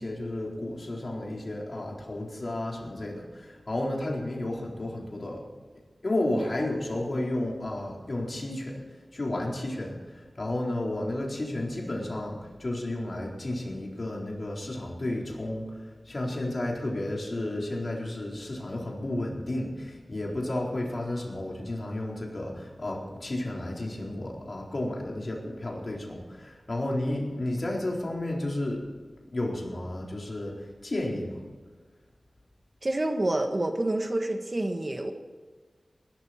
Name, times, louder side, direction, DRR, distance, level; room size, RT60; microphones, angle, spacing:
voice 1, 0.0-5.4 6.0-8.8 9.1-28.8 29.3-31.4, left 1 dB, 50° left, -1 dB, 4.1 m, -32 dB
voice 2, 32.8-35.1, right 1 dB, 40° right, 5 dB, 1.6 m, -28 dB
20.0 x 12.5 x 4.4 m, 1.5 s
wide cardioid pair, 85°, 0 cm